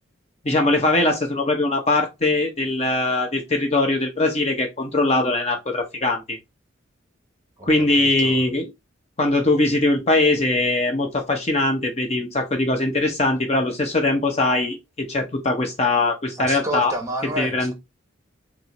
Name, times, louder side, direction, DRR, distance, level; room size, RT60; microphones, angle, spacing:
voice 1, 0.4-6.4 7.6-8.7 9.2-16.9 17.2-17.7, left 2 dB, 35° left, 0.8 m, -21 dB
voice 2, 7.6-8.4 16.3-17.7, right 1 dB, 15° right, 0.9 m, -31 dB
6.1 x 2.0 x 3.0 m
head